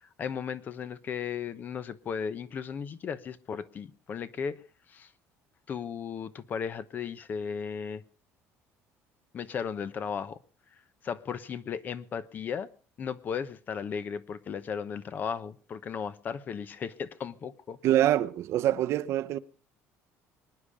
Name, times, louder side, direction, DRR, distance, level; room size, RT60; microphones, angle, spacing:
voice 1, 0.0-4.6 4.9-5.1 5.7-8.0 9.3-10.4 11.0-12.7 13.0-17.8, left 7 dB, 35° left, 0.9 m, -35 dB
voice 2, 17.8-19.4, right 12 dB, 55° right, 0.8 m, -25 dB
25.0 x 10.0 x 5.0 m
cardioid pair, 160°, 6 cm